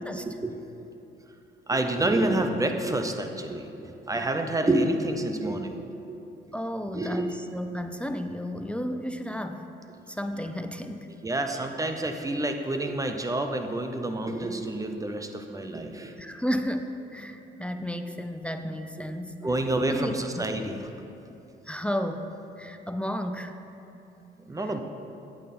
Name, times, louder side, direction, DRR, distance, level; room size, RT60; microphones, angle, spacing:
voice 1, 0.3-0.6 1.7-6.2 6.9-7.4 11.2-16.1 19.0-19.1 19.4-20.8 24.4-24.8, right 1 dB, 15° right, 6 dB, 0.7 m, -28 dB
voice 2, 6.5-9.7 10.1-11.1 16.2-19.5 19.9-20.1 21.7-22.3 22.6-23.5, equal, 5° left, 7 dB, 0.4 m, -32 dB
8.7 x 8.6 x 4.3 m, 2.9 s
cardioid pair, 90°, 20 cm